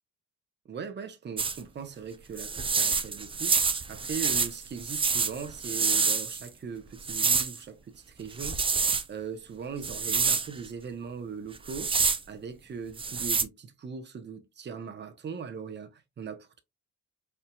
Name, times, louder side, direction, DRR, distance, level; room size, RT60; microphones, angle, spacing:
voice 1, 0.6-8.8 9.1-16.6, right 6 dB, 35° right, 0.8 m, -40 dB
sound 1, 1.4-1.6 2.4-6.5 7.0-7.6 8.3-9.0 9.8-10.5 11.6-12.2 13.0-13.4, right 5 dB, 20° right, 0.4 m, -27 dB
4.5 x 2.7 x 2.2 m
cardioid pair, 90°, 30 cm